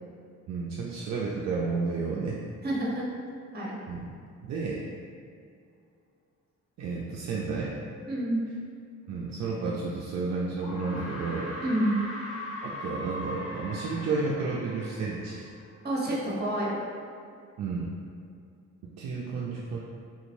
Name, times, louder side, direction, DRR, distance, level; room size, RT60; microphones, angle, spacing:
voice 1, 0.5-2.4 3.9-4.0 4.4-4.8 6.8-7.8 9.1-11.5 12.6-15.4 17.6-17.9 19.0-19.8, right 4 dB, 60° right, -4 dB, 0.5 m, -31 dB
voice 2, 2.6-3.1 3.5-3.8 8.1-8.4 11.6-11.9 15.8-16.8, right 1 dB, 35° right, -4 dB, 1.0 m, -28 dB
sound 1, 9.8-9.9 10.6-15.8, left 1 dB, 50° left, 0.7 m, -40 dB
3.7 x 2.9 x 2.6 m, 2.4 s
cardioid pair, 90°, 30 cm